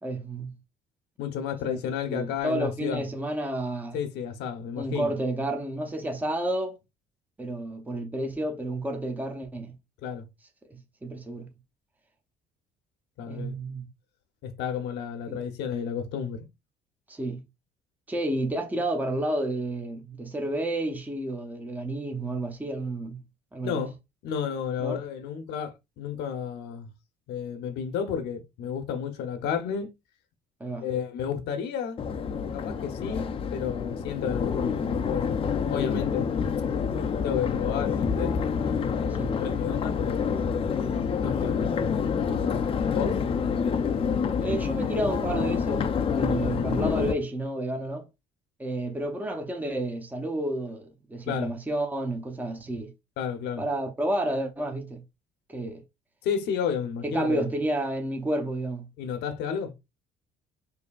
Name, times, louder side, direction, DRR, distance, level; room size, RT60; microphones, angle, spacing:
voice 1, 0.0-0.5 1.6-1.8 2.1-4.0 4.8-6.8 7.4-9.7 10.6-11.5 13.3-13.9 15.3-15.4 17.1-17.4 18.1-23.2 23.5-23.9 24.8-25.0 30.6-30.9 39.1-39.3 44.4-48.1 48.6-52.9 53.6-55.0 55.5-55.8 57.0-58.9, right 1 dB, 10° right, 0.7 m, -31 dB
voice 2, 1.2-3.0 3.9-5.1 10.0-10.3 13.2-13.6 14.4-16.5 23.6-23.9 24.2-26.9 27.3-29.9 30.8-32.0 32.5-35.4 35.7-36.3 37.2-38.4 38.6-39.0 39.4-40.6 41.2-43.2 51.3-51.5 53.2-53.6 56.2-57.5 59.0-59.7, left 7 dB, 85° left, 0.8 m, -32 dB
Crowd, 32.0-47.1, left 6 dB, 35° left, 0.4 m, -27 dB
4.8 x 2.7 x 2.3 m
cardioid pair, 110°, 17 cm